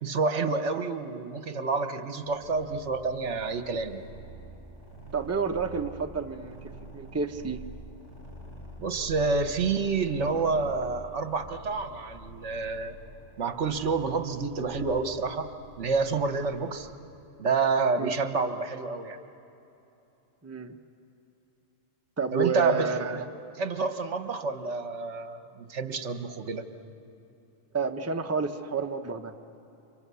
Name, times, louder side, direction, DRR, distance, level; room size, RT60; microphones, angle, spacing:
voice 1, 0.0-4.0 8.8-13.0 13.4-15.5 15.8-16.9 17.4-19.2 22.3-23.2 23.6-26.6, right 4 dB, 60° right, 8 dB, 1.4 m, -28 dB
sound 1, 2.2-16.8, right 2 dB, 65° left, 6.3 m, -46 dB
voice 2, 5.1-7.6 18.0-18.1 20.4-20.8 22.2-23.3 27.7-29.3, right 5 dB, 15° right, 5 dB, 0.8 m, -30 dB
29.5 x 25.5 x 7.0 m, 3.0 s
omnidirectional pair, 1.4 m